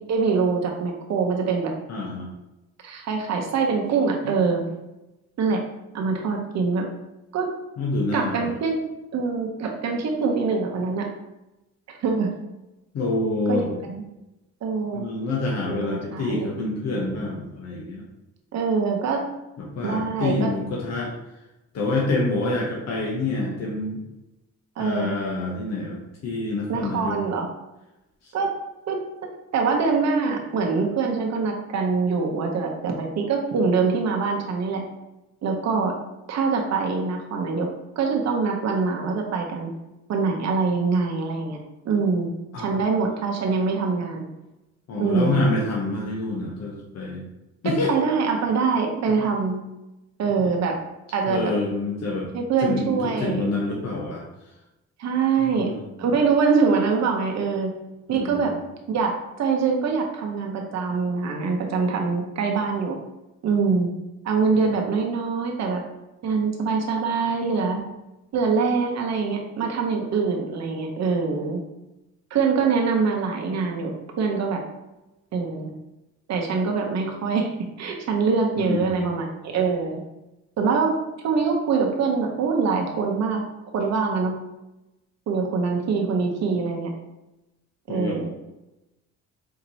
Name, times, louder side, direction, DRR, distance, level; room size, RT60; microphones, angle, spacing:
voice 1, 0.1-1.7 2.8-4.6 5.4-5.6 5.9-6.9 7.3-7.5 8.1-8.8 9.1-11.1 11.9-12.3 13.5-14.0 14.6-15.0 15.7-16.5 18.5-19.2 19.8-20.5 24.8-25.1 26.7-27.5 28.3-28.5 28.9-29.0 29.5-34.8 35.4-35.9 36.3-37.7 38.0-39.7 40.1-41.6 41.8-42.3 42.6-44.2 45.0-45.5 47.6-49.6 50.2-50.7 51.1-51.5 52.3-53.5 55.0-55.7 56.0-57.7 58.1-58.5 58.9-59.1 59.4-63.0 63.4-63.9 64.2-65.8 66.2-67.8 68.3-71.6 72.3-73.9 74.2-74.6 75.3-75.7 76.3-77.5 77.8-80.0 80.6-80.9 81.2-83.4 83.7-84.3 85.3-86.9 87.9-88.3, right 5 dB, 60° right, 2 dB, 0.8 m, -24 dB
voice 2, 1.9-2.3 7.8-8.5 12.9-13.7 14.9-18.0 19.6-21.1 21.7-24.0 24.8-27.2 28.2-28.3 42.5-42.8 44.9-47.2 47.6-47.9 50.3-50.6 51.3-52.3 52.6-54.2 55.4-55.8 58.1-58.5 78.6-79.0 87.9-88.2, left 2 dB, 60° left, -2 dB, 0.9 m, -27 dB
4.3 x 2.8 x 2.7 m, 0.96 s
cardioid pair, 90°, 30 cm